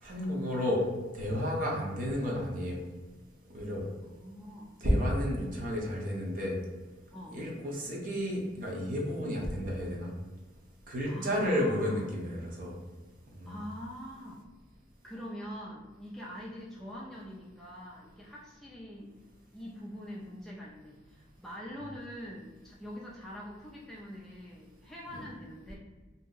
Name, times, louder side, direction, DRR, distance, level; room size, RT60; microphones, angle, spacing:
voice 1, 0.0-0.8 1.1-2.8 3.5-3.8 4.8-6.5 7.3-10.1 10.9-12.7 13.4-13.6, equal, 45° right, -2 dB, 0.7 m, -31 dB
voice 2, 4.0-4.7 7.1-7.4 11.1-12.0 13.5-14.5 15.0-19.1 19.5-25.8, equal, ahead, -5 dB, 0.3 m, -44 dB
2.7 x 2.0 x 3.7 m, 1.2 s
head